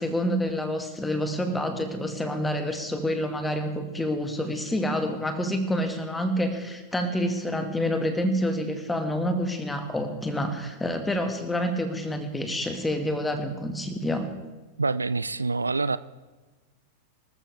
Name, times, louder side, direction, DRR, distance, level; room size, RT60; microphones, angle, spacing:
voice 1, 0.0-14.3, equal, 10° left, 6 dB, 2.1 m, -28 dB
voice 2, 14.8-16.0, right 3 dB, 80° right, 16 dB, 0.4 m, -26 dB
24.0 x 14.0 x 3.6 m, 1.3 s
figure-of-eight pair, 90°, 0 cm